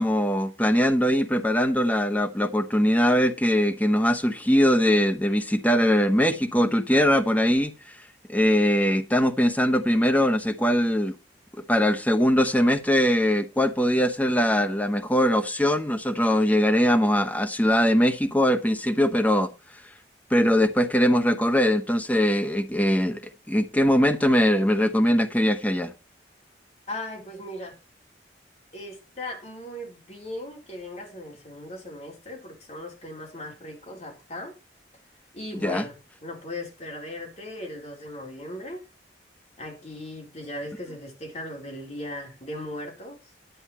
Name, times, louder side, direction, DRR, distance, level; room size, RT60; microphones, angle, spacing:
voice 1, 0.0-11.2 11.5-20.0 20.3-25.9 35.5-35.9, equal, 10° left, 1.1 m, -22 dB
voice 2, 26.9-27.8 28.7-34.6 35.3-36.0 36.2-38.8 39.6-43.2, left 1 dB, 40° left, 4.1 m, -38 dB
10.5 x 8.8 x 4.3 m
head